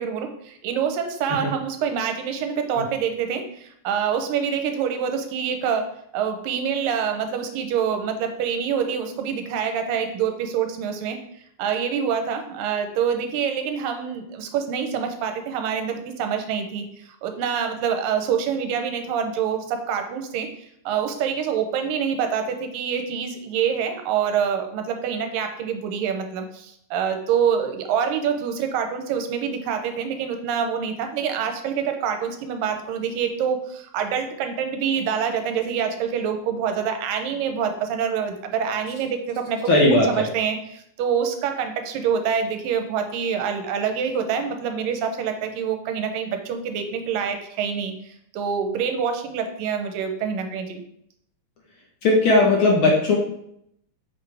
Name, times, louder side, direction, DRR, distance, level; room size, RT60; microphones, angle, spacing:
voice 1, 0.0-5.9 6.1-11.2 11.6-50.8, right 7 dB, 85° right, 6 dB, 2.5 m, -26 dB
voice 2, 39.7-40.3 52.0-53.2, left 2 dB, 60° left, -1 dB, 1.3 m, -18 dB
8.1 x 5.4 x 3.4 m, 0.73 s
omnidirectional pair, 3.9 m